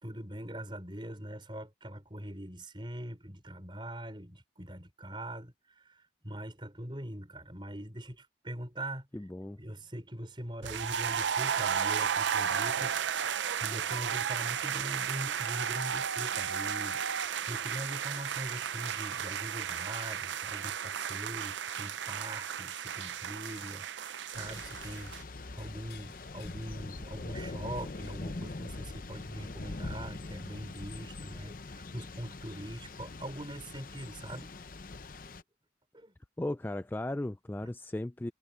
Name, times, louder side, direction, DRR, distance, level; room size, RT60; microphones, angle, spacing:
voice 1, 0.0-9.2 9.6-13.0 13.2-34.5 35.9-36.1 37.6-37.7, right 1 dB, 25° right, 4.9 m, -42 dB
voice 2, 9.1-9.6 36.4-38.3, left 1 dB, 10° left, 0.3 m, -36 dB
sound 1, 10.6-25.2, right 8 dB, 80° right, 0.5 m, -34 dB
sound 2, 17.5-30.7, left 8 dB, 70° left, 6.6 m, -61 dB
Thunder / Rain, 24.3-35.4, left 3 dB, 45° left, 0.7 m, -43 dB
head